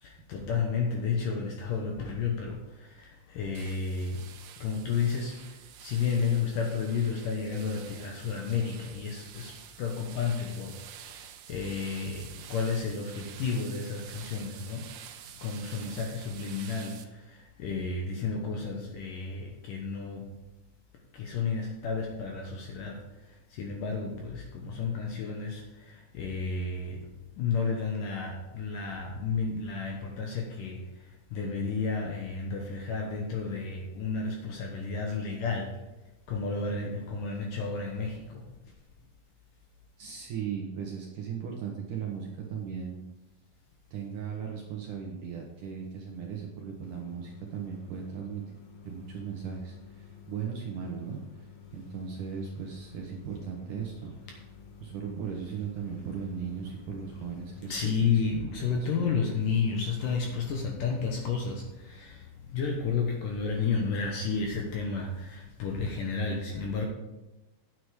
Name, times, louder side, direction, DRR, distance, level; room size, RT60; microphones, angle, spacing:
voice 1, 0.0-4.2 4.6-14.9 15.4-20.3 21.1-23.0 23.3-27.0 27.4-35.8 36.3-38.4 54.3-54.4 57.2-57.3 57.5-66.9, left 5 dB, 70° left, 1 dB, 2.2 m, -32 dB
sound 1, 3.5-17.0, right 9 dB, 85° right, 1.9 m, -48 dB
voice 2, 40.0-43.0 43.9-48.4 48.8-51.5 51.7-54.1 54.8-57.7 58.0-58.1 58.7-59.0, right 7 dB, 70° right, 0 dB, 2.1 m, -37 dB
sound 2, 46.8-60.5, left 7 dB, 85° left, 3.6 m, -51 dB
9.7 x 7.7 x 4.9 m, 1.0 s
omnidirectional pair, 4.9 m